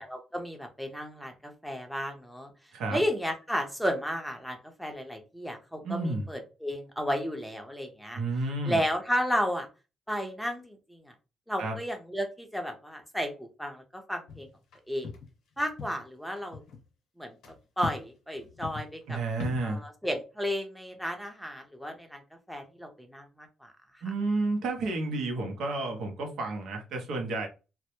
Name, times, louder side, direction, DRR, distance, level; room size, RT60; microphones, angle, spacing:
voice 1, 0.0-2.5 2.9-8.2 8.6-9.7 10.1-11.1 11.5-14.5 14.9-15.1 15.6-16.6 17.2-17.3 17.8-19.2 19.6-22.2 22.5-23.7, equal, ahead, 0.6 m, -33 dB
voice 2, 5.8-6.3 8.1-8.8 11.6-11.8 19.1-19.8 24.0-27.5, right 2 dB, 75° right, 0.7 m, -31 dB
sound 1, 14.3-14.8 15.0-15.3 15.6-16.0 16.4-16.8 17.4-17.6 17.8-18.1 18.4-19.7, left 5 dB, 75° left, 0.8 m, -39 dB
2.1 x 2.0 x 2.9 m
cardioid pair, 85°, 0 cm